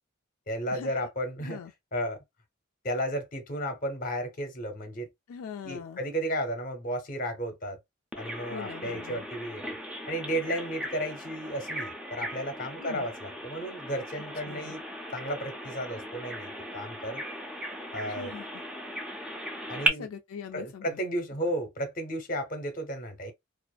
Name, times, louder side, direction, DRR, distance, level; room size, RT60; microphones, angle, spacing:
voice 1, 0.5-1.6 1.9-2.2 2.8-5.1 5.6-7.8 8.2-9.6 10.1-14.8 15.1-17.2 17.9-18.3 19.7-20.1 20.5-23.3, equal, 40° left, 0.8 m, -33 dB
voice 2, 1.4-1.7 5.3-6.0 8.5-9.3 12.8-13.1 14.5-14.8 18.1-18.6 19.9-21.0, left 7 dB, 80° left, 0.3 m, -42 dB
Bird vocalization bird call bird song, 8.1-19.9, equal, 5° right, 0.4 m, -37 dB
2.5 x 2.4 x 2.2 m
head